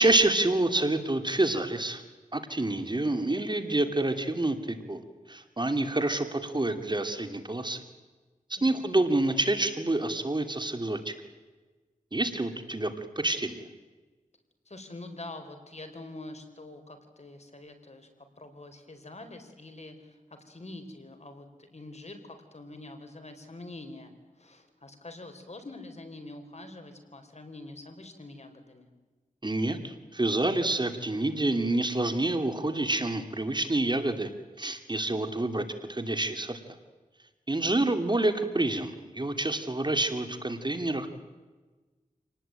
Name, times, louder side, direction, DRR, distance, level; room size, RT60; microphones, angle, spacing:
voice 1, 0.0-2.0 2.3-5.0 5.3-7.8 8.6-11.1 12.1-13.6 29.4-34.3 34.6-36.6 37.5-41.1, right 2 dB, 35° right, 7 dB, 2.6 m, -28 dB
voice 2, 8.6-9.0 14.6-28.9, left 2 dB, 50° left, 7 dB, 4.4 m, -45 dB
27.5 x 19.0 x 8.9 m, 1.3 s
wide cardioid pair, 50°, 14 cm